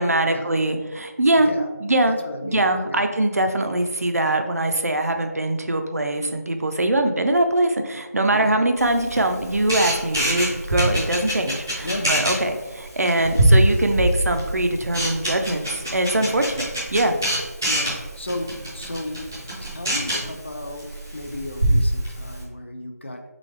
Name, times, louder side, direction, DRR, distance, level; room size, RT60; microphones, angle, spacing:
voice 1, 0.0-1.5 1.8-2.2 2.4-17.2, right 1 dB, 60° right, 6 dB, 0.6 m, -22 dB
voice 2, 1.4-1.7 2.0-3.1 8.3-8.6 11.8-12.1 13.2-13.4 16.2-16.4 17.7-19.3 19.6-23.2, left 1 dB, 45° left, 5 dB, 0.5 m, -34 dB
Camera, 8.8-22.4, right 1 dB, 10° right, 0.5 m, -25 dB
4.0 x 3.8 x 3.2 m, 1.2 s
figure-of-eight pair, 175°, 9 cm